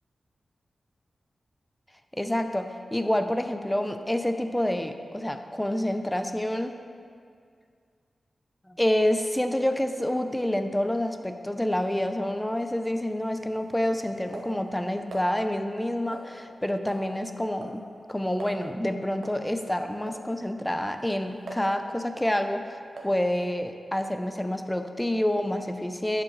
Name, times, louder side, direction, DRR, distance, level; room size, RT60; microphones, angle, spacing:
voice 1, 2.1-6.7 8.7-26.2, left 1 dB, 10° left, 7 dB, 0.6 m, -28 dB
sound 1, 13.0-15.3 16.1-16.6 16.9-17.1 17.3-17.8 18.1-18.2 18.4-18.6 19.2-19.4 20.1-20.2 20.7-21.8 22.2-22.4 23.0-23.2, right 2 dB, 80° right, 1.1 m, -44 dB
11.5 x 7.1 x 3.2 m, 2.2 s
cardioid pair, 50°, 0 cm